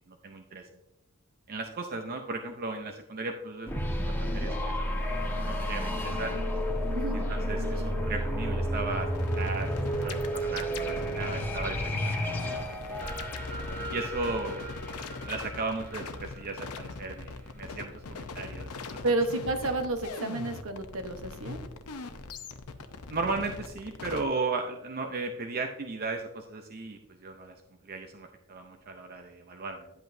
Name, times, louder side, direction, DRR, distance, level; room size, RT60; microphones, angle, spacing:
voice 1, 0.1-0.7 1.5-6.4 7.1-9.7 10.0-13.2 13.9-14.6 15.3-19.0 23.1-27.5 27.8-29.9, right 3 dB, 45° right, 4 dB, 0.6 m, -36 dB
sound 1, 3.7-16.4, equal, 10° left, 1.2 m, -31 dB
sound 2, 9.1-24.2, left 3 dB, 85° left, 0.7 m, -41 dB
voice 2, 19.0-21.6, right 2 dB, 65° right, 6 dB, 1.1 m, -30 dB
10.5 x 8.0 x 2.7 m, 0.90 s
head